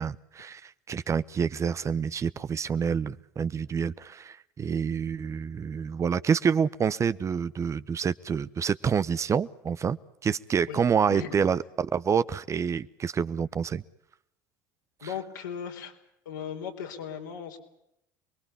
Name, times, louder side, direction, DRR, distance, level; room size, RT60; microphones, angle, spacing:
voice 1, 0.0-10.0 10.2-13.8, right 6 dB, 30° right, 16 dB, 1.0 m, -27 dB
voice 2, 11.1-11.5 15.0-15.9 16.3-17.6, left 8 dB, 80° left, 2 dB, 4.3 m, -37 dB
28.0 x 22.0 x 7.2 m, 0.77 s
hypercardioid pair, 70°, 10 cm